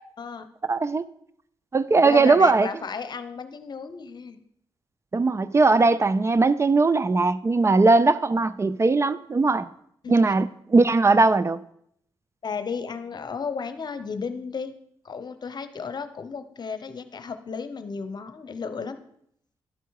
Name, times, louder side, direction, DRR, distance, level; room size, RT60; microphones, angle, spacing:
voice 1, 0.7-1.0 1.7-2.7 5.1-9.7 10.1-11.6, right 3 dB, 30° right, 0.4 m, -19 dB
voice 2, 2.0-4.4 10.0-10.3 12.4-14.7 15.0-19.0, left 5 dB, 50° left, 0.8 m, -33 dB
11.0 x 4.5 x 4.7 m
cardioid pair, 60°, 9 cm